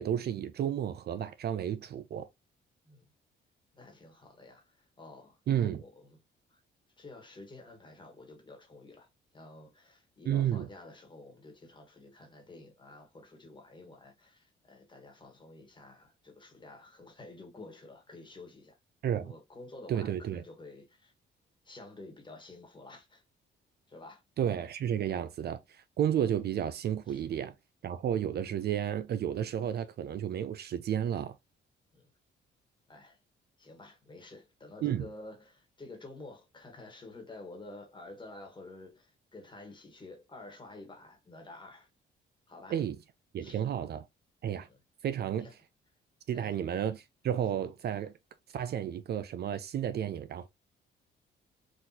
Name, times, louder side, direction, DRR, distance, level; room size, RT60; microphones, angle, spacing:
voice 1, 0.0-2.3 5.5-5.8 10.3-10.7 19.0-19.3 19.9-20.4 24.4-25.6 26.0-27.5 27.8-31.4 34.8-35.1 42.7-43.0 43.3-44.1 44.4-44.7 45.0-45.5 46.3-48.1 48.5-50.5, right 10 dB, 55° right, 0.4 m, -32 dB
voice 2, 3.7-6.2 6.5-6.6 7.0-9.1 9.3-18.8 19.2-21.1 21.6-23.2 23.9-24.2 27.1-27.2 31.9-32.1 32.9-33.2 33.6-41.9 42.5-42.8 43.4-43.6 44.7-44.8 45.4-45.5 46.3-46.6, left 2 dB, 25° left, 1.4 m, -50 dB
3.9 x 2.4 x 2.7 m
cardioid pair, 90°, 20 cm